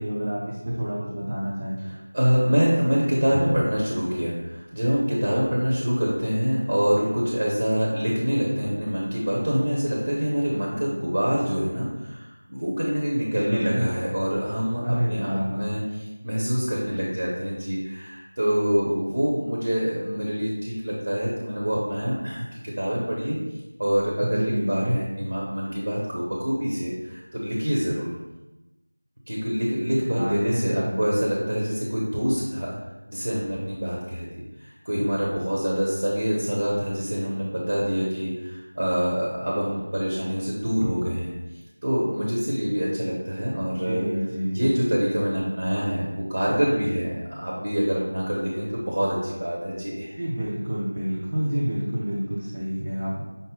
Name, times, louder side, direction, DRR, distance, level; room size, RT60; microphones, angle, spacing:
voice 1, 0.0-1.8 13.3-13.8 14.8-15.7 24.2-25.0 30.1-31.0 43.9-44.6 50.2-53.2, equal, 30° right, -6 dB, 0.5 m, -28 dB
voice 2, 1.8-15.8 16.2-22.5 22.8-23.4 23.8-28.1 29.3-32.7 33.1-41.3 41.8-44.0 44.5-50.2, equal, 45° right, -4 dB, 0.9 m, -25 dB
5.4 x 2.1 x 3.8 m, 1.0 s
figure-of-eight pair, 175°, 0 cm